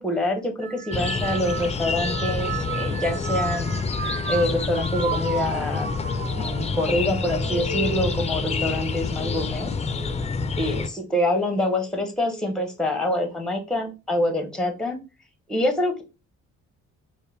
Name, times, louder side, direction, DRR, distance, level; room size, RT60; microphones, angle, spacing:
voice 1, 0.0-3.8 4.3-5.9 6.3-9.7 10.6-15.0 15.5-16.0, left 1 dB, ahead, 5 dB, 0.8 m, -26 dB
sound 1, 0.6-10.2 10.7-11.2 12.2-12.6, right 6 dB, 35° right, 0.6 m, -34 dB
sound 2, 0.9-10.9, left 4 dB, 20° left, 0.4 m, -28 dB
4.3 x 2.0 x 3.4 m, 0.30 s
cardioid pair, 90°, 30 cm